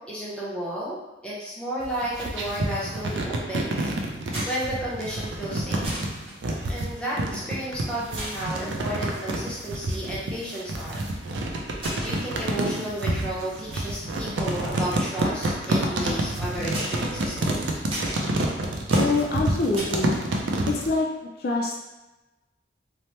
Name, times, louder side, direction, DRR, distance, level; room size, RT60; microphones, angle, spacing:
voice 1, 0.1-3.9 4.2-5.9 6.7-11.1 12.0-17.7, right 1 dB, 5° left, -7 dB, 0.6 m, -33 dB
sound 1, 1.8-20.9, right 1 dB, 90° right, 0.4 m, -28 dB
sound 2, 2.3-2.6 2.8-3.2 4.3-5.1 5.3-5.4 5.8-6.4 7.4-7.7 8.2-8.6 9.3-9.4 10.6-11.1 11.7-13.0 13.3-13.7 14.2-16.2 16.7-20.0, equal, 30° right, 1.1 m, -37 dB
voice 2, 18.9-20.2 20.6-21.1 21.4-21.8, left 3 dB, 55° left, -1 dB, 0.3 m, -25 dB
2.9 x 2.0 x 3.1 m, 1.1 s
head